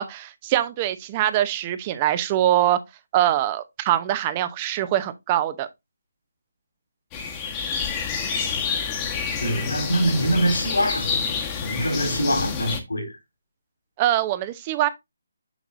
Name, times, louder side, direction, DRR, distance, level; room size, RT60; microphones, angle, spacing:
voice 1, 0.0-2.8 3.1-5.7 14.0-14.9, right 12 dB, 25° right, 0.7 m, -23 dB
sound 1, 7.1-12.8, left 6 dB, 20° left, 1.2 m, -28 dB
voice 2, 9.4-11.2 11.6-13.2, equal, 80° left, 3.4 m, -24 dB
7.2 x 5.9 x 2.6 m
figure-of-eight pair, 150°, 0 cm